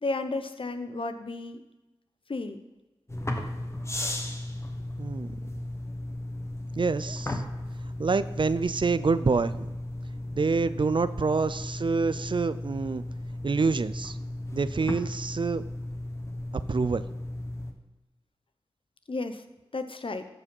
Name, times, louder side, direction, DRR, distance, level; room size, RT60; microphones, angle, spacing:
voice 1, 0.0-1.6 2.3-2.6 19.1-19.4 19.7-20.2, left 3 dB, 60° left, 9 dB, 0.9 m, -33 dB
sound 1, 3.1-17.7, left 1 dB, 25° left, 1.4 m, -35 dB
voice 2, 5.0-5.3 6.8-7.4 8.0-9.7 10.3-13.0 13.4-14.2 14.5-15.6 16.7-17.1, right 4 dB, 50° right, 14 dB, 0.5 m, -27 dB
13.5 x 4.9 x 5.4 m, 1.1 s
cardioid pair, 45°, 10 cm